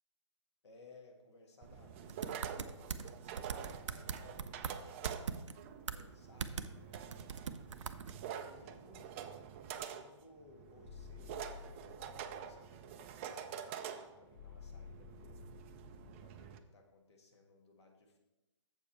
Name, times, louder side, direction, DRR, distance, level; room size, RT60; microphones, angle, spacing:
voice 1, 0.6-5.3 5.9-7.6 8.2-9.3 9.6-15.6 16.2-18.2, left 3 dB, 60° left, 2 dB, 1.8 m, -61 dB
sound 1, 1.6-16.6, right 8 dB, 25° right, 0.4 m, -47 dB
sound 2, 2.1-3.1 3.4-4.8 5.0-5.5 5.9-6.0 6.4-6.7 6.9-8.2, right 6 dB, 70° right, 0.5 m, -40 dB
sound 3, 10.9-12.7 14.3-16.3, left 8 dB, 40° left, 0.5 m, -53 dB
7.3 x 7.0 x 4.5 m, 1.0 s
figure-of-eight pair, 140°, 16 cm